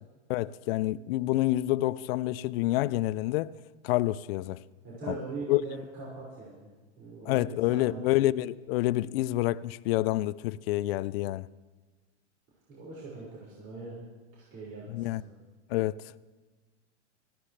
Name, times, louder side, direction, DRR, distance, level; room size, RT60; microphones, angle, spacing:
voice 1, 0.3-3.6 3.8-4.6 5.1-5.2 5.5-5.6 7.3-11.5 14.9-15.2 15.7-16.0, left 16 dB, 55° left, 0.5 m, -28 dB
voice 2, 4.8-6.7 7.0-8.1 12.7-14.0 14.3-15.3, right 3 dB, 35° right, 5.8 m, -41 dB
17.5 x 15.0 x 3.3 m
hypercardioid pair, 120°, 35 cm